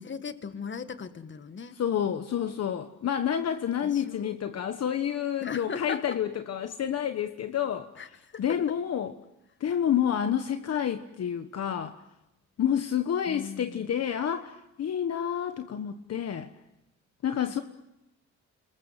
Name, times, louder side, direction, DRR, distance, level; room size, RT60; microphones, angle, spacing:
voice 1, 0.0-1.8 3.8-4.4 5.4-6.2 8.0-8.4 13.3-13.9 17.5-17.6, left 6 dB, 40° left, 10 dB, 1.8 m, -38 dB
voice 2, 1.8-7.9 8.4-9.1 9.6-12.0 12.6-16.5 17.2-17.6, left 9 dB, 55° left, 8 dB, 1.3 m, -29 dB
29.5 x 21.5 x 7.5 m, 0.88 s
cardioid pair, 90°, 30 cm